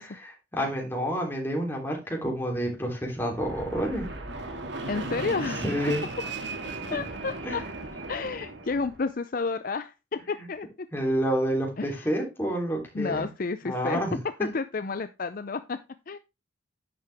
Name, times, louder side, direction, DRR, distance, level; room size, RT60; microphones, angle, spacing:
voice 1, 0.0-4.1 5.6-6.1 6.7-7.0 7.4-7.6 10.9-13.3 13.6-14.2, equal, 10° left, 0 dB, 3.2 m, -29 dB
Fixed-wing aircraft airplane, 3.3-9.0, right 2 dB, 65° right, 2.2 m, -36 dB
voice 2, 4.9-5.6 6.9-7.6 8.1-10.9 11.8-12.1 12.9-14.0 14.4-15.8 16.1-16.2, left 4 dB, 45° left, 11 dB, 0.5 m, -31 dB
10.5 x 7.6 x 3.5 m, 0.26 s
head